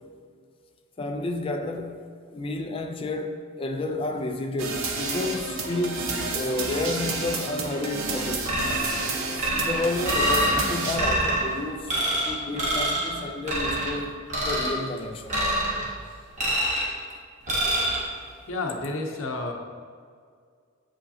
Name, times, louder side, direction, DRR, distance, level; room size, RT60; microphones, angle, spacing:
voice 1, 1.0-8.7 9.5-12.0 12.2-15.5 17.1-17.2, left 2 dB, 25° left, 0.3 m, -31 dB
sound 1, 4.6-11.0, right 3 dB, 75° right, 0.7 m, -30 dB
sound 2, 8.5-9.0 9.4-10.6 10.9-11.4 11.9-12.3 12.6-13.1 13.5-13.9 14.3-14.8 15.3-15.9 16.4-16.9 17.5-18.0, right 1 dB, 35° right, 1.2 m, -25 dB
voice 2, 18.5-19.5, left 2 dB, 70° left, 0.7 m, -30 dB
7.3 x 5.1 x 2.8 m
head